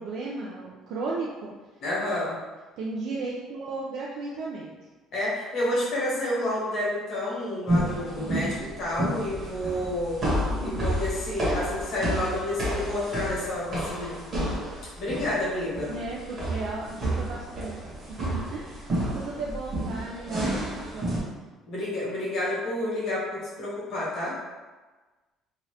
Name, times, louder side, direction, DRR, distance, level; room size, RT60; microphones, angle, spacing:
voice 1, 0.0-1.5 2.8-4.7 10.5-10.9 11.5-11.7 15.9-17.8 18.1-21.5, right 3 dB, 60° right, -4 dB, 0.4 m, -35 dB
voice 2, 1.8-2.4 5.1-10.2 10.6-14.2 15.0-15.9 21.7-24.4, left 1 dB, 50° left, -6 dB, 1.2 m, -29 dB
sound 1, 7.7-21.2, right 1 dB, 25° right, 1.0 m, -30 dB
2.8 x 2.4 x 3.2 m, 1.3 s
cardioid pair, 175°, 0 cm